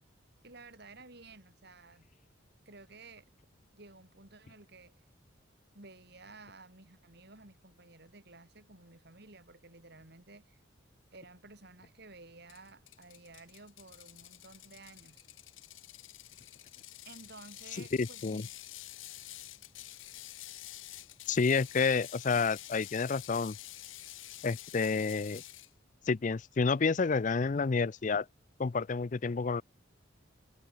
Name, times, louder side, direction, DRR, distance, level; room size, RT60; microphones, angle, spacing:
voice 1, 0.4-2.1 2.7-3.3 3.7-4.9 5.7-10.6 11.1-15.2 17.0-18.5, right 3 dB, 55° right, 4.1 m, -54 dB
Ratchet pawl, 12.5-25.7, left 15 dB, 85° left, 1.6 m, -49 dB
voice 2, 18.0-18.4 21.3-23.6 24.4-25.4 26.1-28.3 28.6-29.6, left 4 dB, 40° left, 0.5 m, -29 dB
head